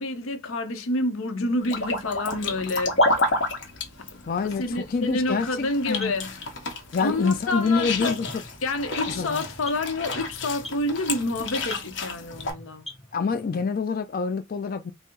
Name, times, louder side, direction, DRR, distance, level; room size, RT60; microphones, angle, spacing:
voice 1, 0.0-3.2 4.0-6.5 7.0-8.2 8.6-12.8, left 2 dB, 85° left, 0.7 m, -28 dB
sound 1, 1.6-12.5, left 2 dB, 60° left, 1.0 m, -30 dB
sound 2, 2.7-13.7, left 1 dB, ahead, 0.7 m, -46 dB
voice 2, 4.3-6.1 6.9-8.3 9.2-9.4 13.1-14.9, left 4 dB, 45° left, 0.4 m, -26 dB
4.1 x 2.0 x 3.7 m
head